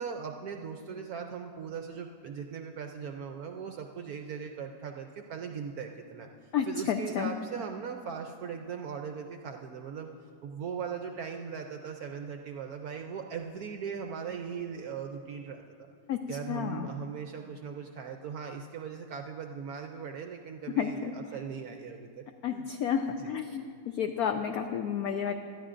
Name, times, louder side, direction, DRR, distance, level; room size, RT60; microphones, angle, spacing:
voice 1, 0.0-15.9 16.3-22.6 23.2-23.4, right 6 dB, 75° right, 4 dB, 0.9 m, -39 dB
voice 2, 6.5-7.3 16.1-16.2 16.5-16.9 20.8-21.1 22.4-25.3, left 8 dB, 80° left, 6 dB, 0.8 m, -31 dB
19.5 x 13.0 x 2.5 m, 2.3 s
omnidirectional pair, 2.1 m